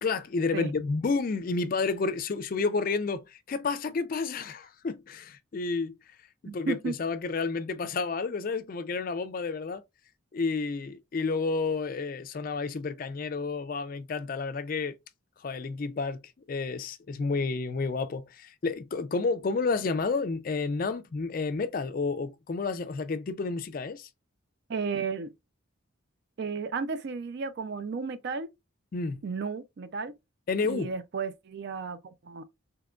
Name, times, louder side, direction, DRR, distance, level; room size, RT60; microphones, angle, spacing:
voice 1, 0.0-5.9 6.4-9.8 10.3-14.9 15.4-24.1 28.9-29.2 30.5-30.9, left 4 dB, 40° left, 0.3 m, -30 dB
voice 2, 6.5-7.0 24.7-25.3 26.4-28.5 29.2-30.1 30.7-32.5, right 5 dB, 50° right, 0.4 m, -33 dB
3.6 x 2.9 x 2.3 m
head